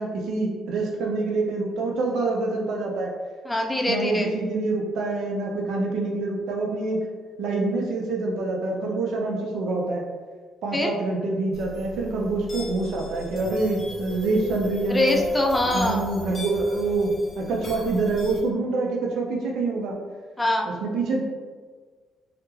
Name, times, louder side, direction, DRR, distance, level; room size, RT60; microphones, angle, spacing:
voice 1, 0.0-3.1 3.9-7.0 7.4-10.0 10.6-15.2 15.7-20.0 20.8-21.2, right 3 dB, 80° right, 0 dB, 0.4 m, -26 dB
voice 2, 3.5-4.3 10.7-10.9 14.9-16.0 20.4-20.7, left 1 dB, 10° left, 1 dB, 0.3 m, -23 dB
sound 1, 11.5-18.4, equal, 50° left, 0.9 m, -38 dB
2.3 x 2.1 x 3.0 m, 1.5 s
cardioid pair, 90°, 0 cm